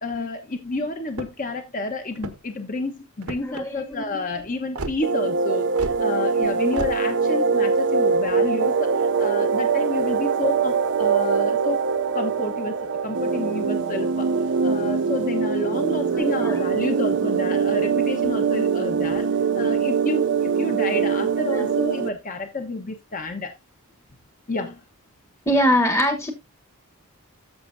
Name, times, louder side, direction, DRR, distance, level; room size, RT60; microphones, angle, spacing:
voice 1, 0.0-11.9 12.1-19.3 19.5-23.5 24.5-24.8, left 2 dB, 35° left, 1.0 m, -30 dB
sound 1, 1.1-1.5 2.1-2.6 3.2-3.6 4.8-5.0 5.8-6.0 6.7-7.0, right 2 dB, 85° right, 1.4 m, -32 dB
voice 2, 3.4-4.2 16.1-16.6 16.9-17.0 21.5-21.7 25.4-26.3, equal, 10° left, 1.1 m, -23 dB
sound 2, 5.0-22.1, right 5 dB, 55° right, 0.6 m, -22 dB
13.5 x 6.9 x 2.6 m
head